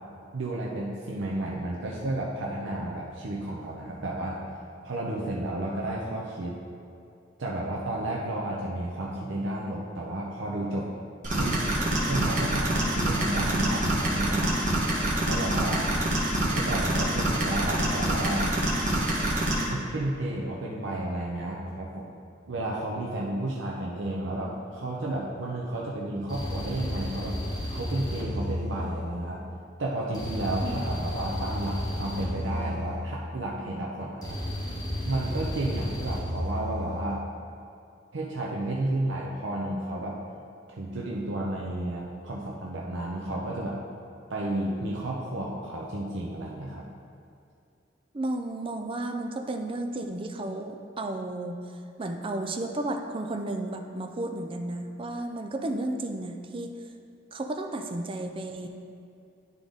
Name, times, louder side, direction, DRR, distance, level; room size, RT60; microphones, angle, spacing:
voice 1, 0.3-4.4 4.8-6.6 7.4-10.9 11.4-11.7 11.9-14.8 15.2-15.9 16.5-18.5 19.6-22.1 22.5-27.4 27.7-29.4 29.8-34.4 35.1-37.2 38.1-40.2 40.7-43.8 44.3-46.9, right 1 dB, 90° right, -3 dB, 0.7 m, -32 dB
sound 1, 11.2-19.6, right 1 dB, 45° right, 1.3 m, -26 dB
sound 2, 26.3-29.4 30.1-33.4 34.2-37.1, equal, 20° left, 1.1 m, -33 dB
voice 2, 30.6-31.2 48.1-51.6 52.0-56.8 57.3-58.7, right 2 dB, 30° right, 5 dB, 0.5 m, -33 dB
11.0 x 3.8 x 3.5 m, 2.5 s
head